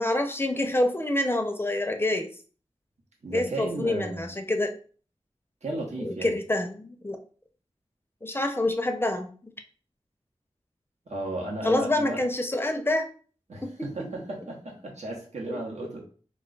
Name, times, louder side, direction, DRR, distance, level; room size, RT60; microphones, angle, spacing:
voice 1, 0.0-2.3 3.3-4.7 6.0-7.2 8.2-9.5 11.6-13.1 13.6-14.1 15.5-15.6, left 1 dB, 20° left, 6 dB, 0.4 m, -27 dB
voice 2, 3.2-4.3 5.6-6.4 11.1-12.2 13.5-16.0, right 2 dB, 85° right, -1 dB, 0.9 m, -34 dB
2.4 x 2.2 x 3.8 m, 0.42 s
wide cardioid pair, 70°, 11 cm